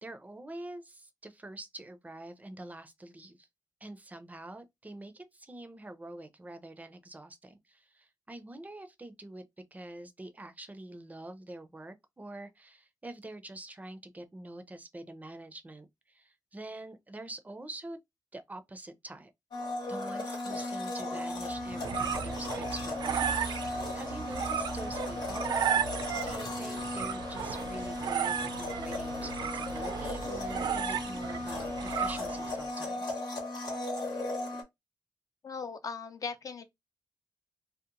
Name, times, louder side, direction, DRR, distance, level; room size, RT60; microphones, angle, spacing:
voice 1, 0.0-3.5 3.8-18.0 18.3-19.3 19.9-23.2 23.5-25.6 26.1-33.2, right 1 dB, 20° right, 0.5 m, -46 dB
Domestic sounds home sounds, 19.5-34.6, left 2 dB, 90° left, 0.9 m, -36 dB
sound 1, 21.5-32.6, right 8 dB, 90° right, 0.3 m, -35 dB
voice 2, 35.4-36.7, left 5 dB, 55° left, 0.4 m, -38 dB
2.8 x 2.1 x 2.5 m
wide cardioid pair, 90°, 7 cm